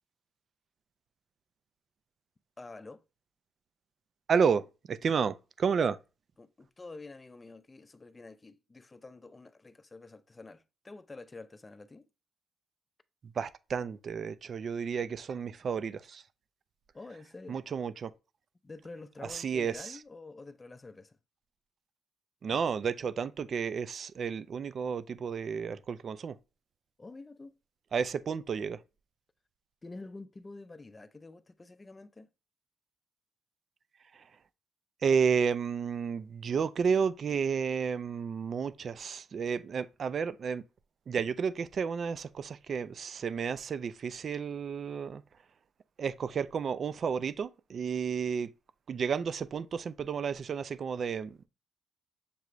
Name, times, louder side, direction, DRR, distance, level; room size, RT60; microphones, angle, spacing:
voice 1, 2.6-3.1 6.4-12.1 16.9-17.6 18.6-21.2 27.0-27.5 29.8-32.3, left 3 dB, 20° left, 0.4 m, -48 dB
voice 2, 4.3-6.0 13.4-16.2 17.5-18.1 19.3-20.0 22.4-26.4 27.9-28.8 34.1-34.2 35.0-40.6 41.1-45.2 46.0-48.5 48.9-51.5, right 6 dB, 50° right, 0.3 m, -31 dB
6.7 x 2.5 x 3.0 m
cardioid pair, 90°, 0 cm